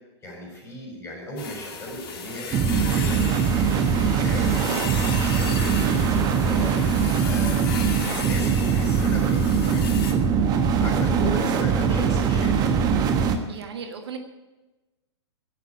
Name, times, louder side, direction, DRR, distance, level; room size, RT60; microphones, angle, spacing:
voice 1, 0.2-4.5 5.1-6.8 7.2-9.9 10.6-12.7, equal, 15° left, -1 dB, 6.2 m, -36 dB
sound 1, 1.4-10.1, left 5 dB, 50° left, 2.3 m, -36 dB
sound 2, 2.5-13.4, right 6 dB, 25° right, 1.3 m, -22 dB
voice 2, 5.2-5.5 13.5-14.2, right 7 dB, 65° right, 5 dB, 1.5 m, -37 dB
11.0 x 9.7 x 8.6 m, 1.1 s
figure-of-eight pair, 110°, 14 cm